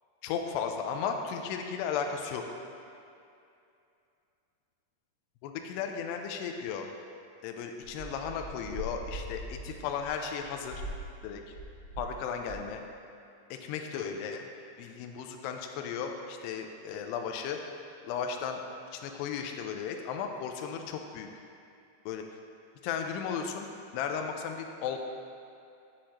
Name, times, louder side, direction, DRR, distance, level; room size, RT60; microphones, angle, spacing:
voice 1, 0.2-2.4 5.4-6.9 7.4-10.7 11.2-11.5 12.0-12.8 13.5-14.5 14.8-17.6 18.1-18.6 18.9-21.3 22.1-22.2 22.8-23.7 23.9-25.0, left 7 dB, 80° left, 4 dB, 2.6 m, -35 dB
sound 1, 7.8-12.2 12.4-12.8, right 1 dB, 70° right, 3.3 m, -42 dB
8.2 x 7.6 x 2.9 m, 2.6 s
omnidirectional pair, 4.9 m